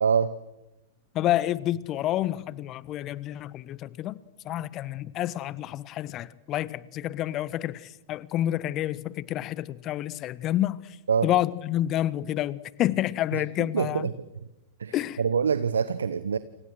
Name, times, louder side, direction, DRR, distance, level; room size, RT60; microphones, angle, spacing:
voice 1, 0.0-0.3 11.1-11.3 13.3-14.1 14.8-16.4, right 6 dB, 70° right, 1.2 m, -25 dB
voice 2, 1.1-4.2 4.4-10.8 11.2-14.1 14.9-15.2, left 13 dB, 35° left, 1.3 m, -29 dB
29.0 x 28.5 x 6.4 m
figure-of-eight pair, 95°, 0 cm